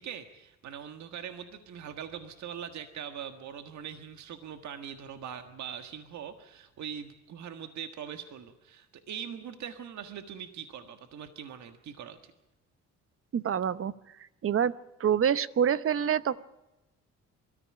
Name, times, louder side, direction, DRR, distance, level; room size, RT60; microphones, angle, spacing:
voice 1, 0.0-12.2, right 8 dB, 70° right, 8 dB, 1.6 m, -42 dB
voice 2, 13.3-13.9 14.4-14.7 15.0-16.4, right 8 dB, 45° right, 16 dB, 0.9 m, -26 dB
23.0 x 14.0 x 8.7 m, 0.97 s
cardioid pair, 90°, 30 cm